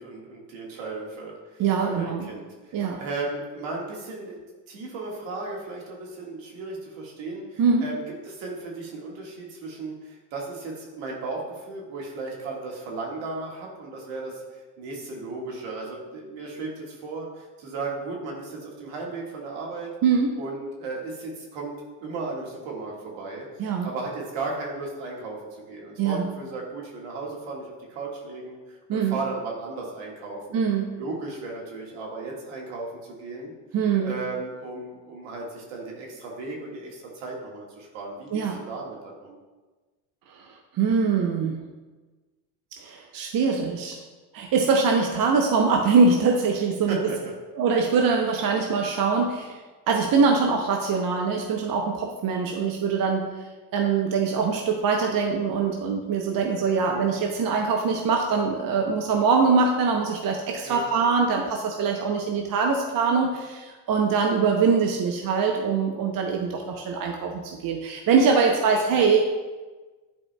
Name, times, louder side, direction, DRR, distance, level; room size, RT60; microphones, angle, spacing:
voice 1, 0.0-4.4 4.7-19.9 20.4-23.5 23.8-30.6 31.0-33.5 34.0-39.4 46.9-47.3 60.6-60.9, right 3 dB, 65° right, -2 dB, 1.8 m, -35 dB
voice 2, 1.6-2.3 2.7-3.0 7.6-7.9 20.0-20.3 23.6-23.9 26.0-26.3 28.9-29.2 30.5-30.9 33.7-34.2 38.3-38.6 40.3-41.6 42.8-44.0 44.3-47.0 47.6-53.3 53.7-69.2, right 5 dB, 45° right, 2 dB, 0.8 m, -23 dB
11.0 x 4.4 x 2.2 m, 1.3 s
hypercardioid pair, 65°, 49 cm